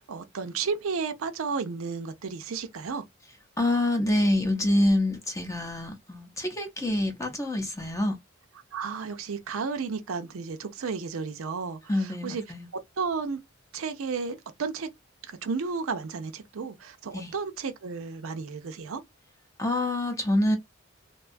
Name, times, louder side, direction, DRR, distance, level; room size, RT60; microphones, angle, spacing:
voice 1, 0.0-3.0 8.7-12.4 13.0-13.4 13.7-14.9 15.3-19.0, right 5 dB, 85° right, 0.5 m, -33 dB
voice 2, 3.6-8.2 11.9-12.7 17.1-17.3 19.6-20.6, left 1 dB, 15° left, 0.5 m, -26 dB
2.6 x 2.2 x 2.4 m
head